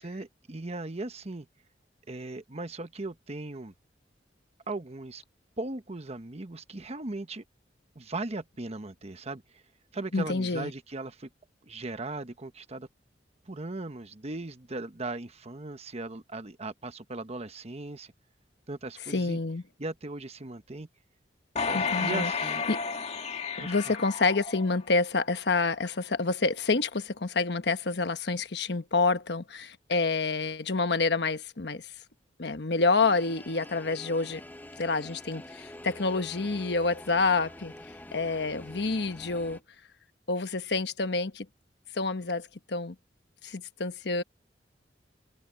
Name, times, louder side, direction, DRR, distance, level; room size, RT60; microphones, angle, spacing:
voice 1, 0.0-1.5 2.1-3.7 4.7-5.2 5.6-7.4 7.9-9.6 9.9-11.3 11.6-12.9 13.5-18.1 18.7-19.4 19.8-20.9 21.7-22.7 23.6-23.9, right 2 dB, 35° right, 1.1 m, -38 dB
voice 2, 10.1-10.7 19.1-19.6 21.7-22.3 22.7-22.8 23.6-31.9 32.4-34.4 34.8-37.7 38.1-39.6 40.3-41.5 41.9-42.9 43.4-44.2, left 3 dB, 70° left, 1.2 m, -28 dB
sound 1, 21.6-25.0 25.5-25.6, left 5 dB, 40° left, 2.1 m, -32 dB
sound 2, 33.0-39.6, left 1 dB, 10° left, 1.0 m, -46 dB
head